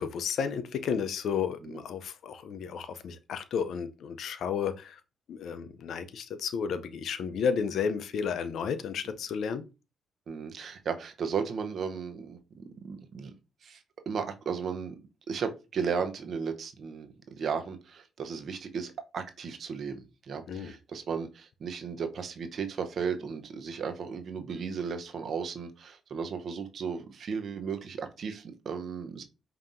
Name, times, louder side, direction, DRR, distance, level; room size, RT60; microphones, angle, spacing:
voice 1, 0.0-5.0 5.3-9.7 20.5-20.7, left 6 dB, 70° left, 0.4 m, -32 dB
voice 2, 10.3-12.4 12.8-13.3 13.6-13.8 14.1-15.0 15.3-29.2, right 6 dB, 60° right, 0.7 m, -35 dB
5.3 x 2.8 x 2.5 m
supercardioid pair, 65°, 0 cm